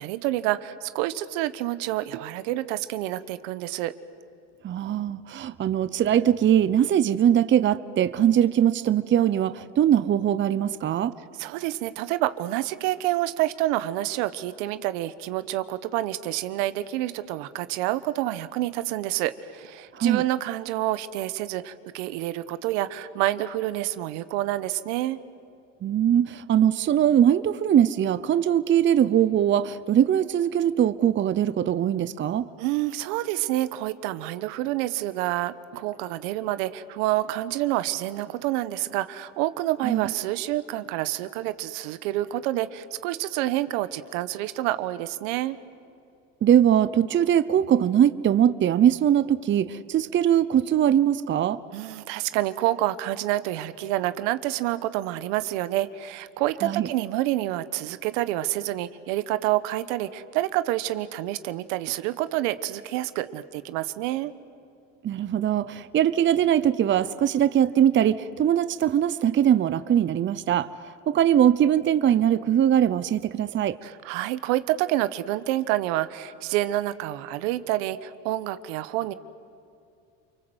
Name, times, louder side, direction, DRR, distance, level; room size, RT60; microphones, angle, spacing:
voice 1, 0.0-3.9 11.4-25.2 32.6-45.6 51.7-64.3 73.8-79.1, right 15 dB, 80° right, 14 dB, 1.2 m, -28 dB
voice 2, 4.6-11.1 19.9-20.2 25.8-32.5 39.8-40.0 46.4-51.6 56.6-56.9 65.0-70.7 71.1-73.8, right 10 dB, 30° right, 14 dB, 0.8 m, -21 dB
29.5 x 24.0 x 8.0 m, 2.4 s
supercardioid pair, 110°, 36 cm